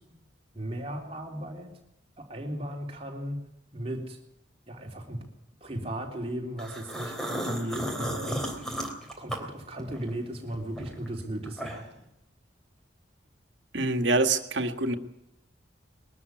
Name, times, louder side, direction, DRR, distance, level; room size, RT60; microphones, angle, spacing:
voice 1, 0.5-1.7 2.2-3.4 3.7-4.2 4.7-5.3 5.6-8.7 9.2-11.9, right 1 dB, 30° right, 1 dB, 3.5 m, -36 dB
sound 1, 6.6-10.1 10.5-12.0, equal, 5° left, 3.3 m, -34 dB
voice 2, 13.7-15.0, right 2 dB, 70° right, 7 dB, 1.9 m, -25 dB
21.5 x 13.0 x 9.6 m, 0.83 s
head